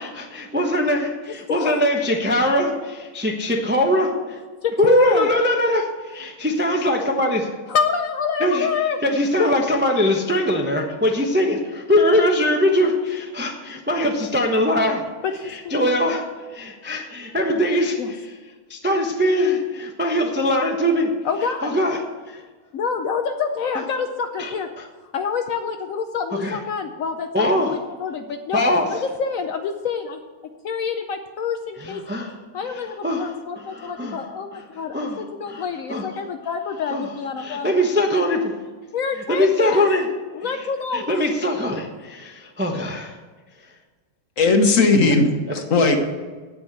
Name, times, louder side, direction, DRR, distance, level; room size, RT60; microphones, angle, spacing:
voice 1, 0.0-4.4 4.8-7.5 8.4-8.7 9.0-15.0 15.4-18.3 18.7-21.1 21.6-22.0 22.3-22.4 23.7-23.8 24.4-24.9 26.3-26.6 27.3-27.8 28.5-29.0 31.8-32.4 32.6-34.3 34.5-36.2 36.9-37.1 37.4-38.5 39.3-40.1 40.6-40.7 40.9-43.2 44.5-44.6 45.5-45.6, left 1 dB, 15° right, 2 dB, 0.4 m, -22 dB
voice 2, 1.5-1.8 4.6-5.3 7.7-9.0 9.4-9.5 15.2-16.0 18.0-18.1 21.2-21.7 22.7-24.7 25.1-28.6 28.9-30.2 30.6-32.0 32.5-37.7 38.9-39.9 40.3-41.1, left 6 dB, 85° left, 6 dB, 0.7 m, -27 dB
voice 3, 44.4-46.0, left 3 dB, 45° left, 5 dB, 1.4 m, -17 dB
9.4 x 8.5 x 7.5 m, 1.4 s
omnidirectional pair, 2.2 m